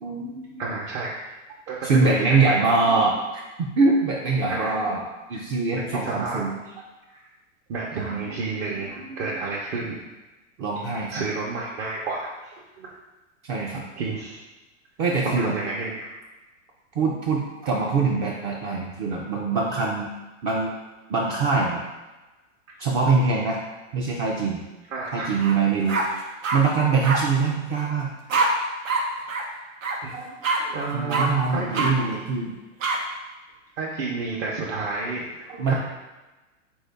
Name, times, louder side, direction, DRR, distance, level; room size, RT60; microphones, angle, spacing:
voice 1, 0.0-0.8 1.8-5.0 5.3-6.6 7.9-8.4 8.7-9.2 10.6-11.1 13.4-13.8 15.0-15.5 17.0-20.1 20.4-20.7 21.1-21.8 22.8-23.6 23.9-24.6 25.1-26.2 26.5-28.1 30.9-32.5 35.6-35.7, right 4 dB, 30° right, -3 dB, 0.4 m, -23 dB
voice 2, 0.6-1.1 1.7-2.6 4.5-4.8 5.3-5.4 5.7-6.7 7.1-7.2 7.7-9.9 11.1-13.0 14.0-14.4 15.2-16.1 24.9-25.3 30.0-32.2 33.8-35.7, right 3 dB, 55° right, -4 dB, 0.8 m, -31 dB
sound 1, 25.4-25.6 25.9-26.6 27.0-27.2 28.3-28.5 28.9-29.0 29.3-29.4 29.8-30.0 30.4-30.6 31.1-31.3 31.7-31.9 32.8-33.0, right 4 dB, 90° right, 0.8 m, -24 dB
3.7 x 2.7 x 3.4 m, 1.1 s
hypercardioid pair, 115°, 38 cm